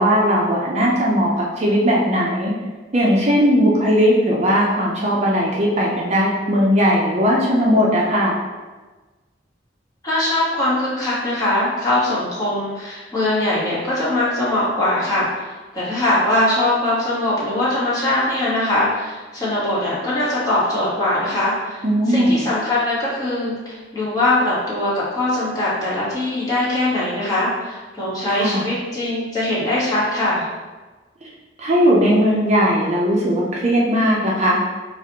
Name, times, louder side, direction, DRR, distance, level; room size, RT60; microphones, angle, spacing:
voice 1, 0.0-2.5 2.9-8.4 21.8-22.4 28.3-28.6 31.6-34.6, equal, 40° right, -3 dB, 0.5 m, -18 dB
voice 2, 10.0-15.5 15.7-30.5, left 1 dB, 20° left, -9 dB, 1.3 m, -21 dB
4.8 x 2.4 x 2.9 m, 1.3 s
head